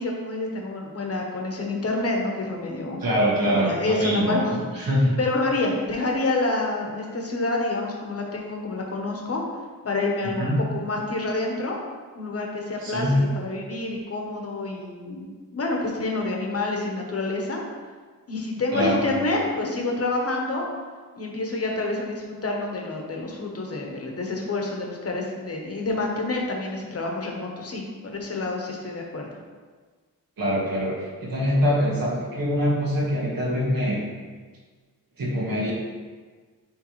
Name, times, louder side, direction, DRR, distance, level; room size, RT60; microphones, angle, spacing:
voice 1, 0.0-3.0 3.4-4.8 5.2-9.4 9.8-11.8 12.1-15.2 15.5-17.6 18.3-20.7 21.1-29.3, left 2 dB, 40° left, 0 dB, 1.0 m, -28 dB
voice 2, 3.0-4.4 4.7-5.1 10.4-10.6 12.8-13.2 18.7-19.0 30.4-34.0 35.2-35.7, equal, 70° right, -5 dB, 1.8 m, -24 dB
9.7 x 3.5 x 3.1 m, 1.5 s
wide cardioid pair, 150°, 36 cm